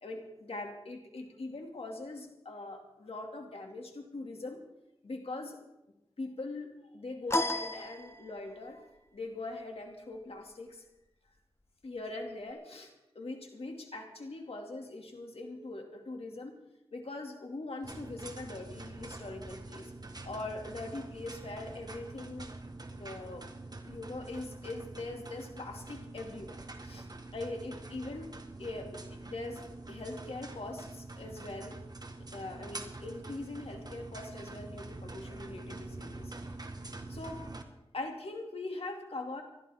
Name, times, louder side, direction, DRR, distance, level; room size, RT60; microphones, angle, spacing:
voice 1, 0.0-4.6 5.0-5.6 6.2-10.8 11.8-16.5 16.9-19.9 20.2-22.5 22.9-23.5 23.9-27.1 27.3-28.3 28.6-29.6 29.9-31.8 32.3-36.3 37.1-37.4 37.9-39.4, left 2 dB, 75° left, 2 dB, 2.5 m, -42 dB
sound 1, 7.3-8.7, left 1 dB, 25° left, 1.1 m, -33 dB
sound 2, 17.8-37.6, right 2 dB, 40° right, 1.6 m, -45 dB
27.0 x 12.0 x 3.7 m, 0.90 s
wide cardioid pair, 60°, 10 cm